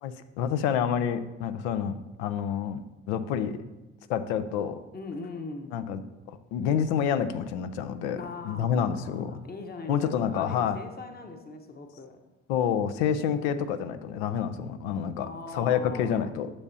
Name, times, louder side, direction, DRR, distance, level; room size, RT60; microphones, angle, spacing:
voice 1, 0.0-3.6 4.1-4.8 5.7-6.0 6.3-8.2 8.4-9.4 9.9-10.8 12.5-16.5, left 8 dB, 80° left, 12 dB, 0.6 m, -28 dB
voice 2, 4.9-5.7 8.2-12.3 15.2-16.3, left 3 dB, 30° left, 5 dB, 1.1 m, -41 dB
9.8 x 7.0 x 2.7 m, 1.0 s
hypercardioid pair, 50°, 32 cm